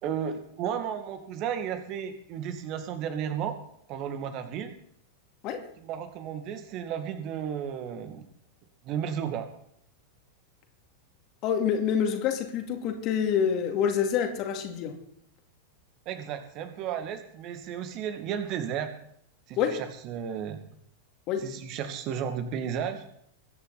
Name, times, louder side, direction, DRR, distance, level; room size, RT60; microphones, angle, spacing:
voice 1, 0.0-3.6 3.9-4.7 5.8-8.2 8.8-9.5 16.1-18.9 19.5-20.6 21.4-23.0, right 8 dB, 40° right, 8 dB, 2.0 m, -33 dB
voice 2, 11.4-14.9 19.6-19.8 21.3-21.4, left 8 dB, 40° left, 5 dB, 2.4 m, -27 dB
21.5 x 10.0 x 4.2 m, 0.68 s
figure-of-eight pair, 90°, 0 cm